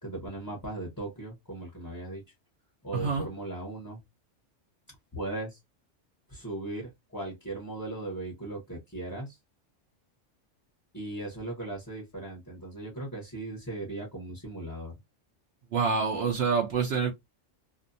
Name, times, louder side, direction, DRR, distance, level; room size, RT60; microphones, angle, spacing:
voice 1, 0.0-2.2 2.8-4.0 5.1-5.6 6.3-9.4 10.9-14.9, right 2 dB, 20° left, 0.7 m, -38 dB
voice 2, 2.9-3.3 15.7-17.1, right 5 dB, 65° right, 0.8 m, -27 dB
2.5 x 2.1 x 2.5 m
omnidirectional pair, 1.3 m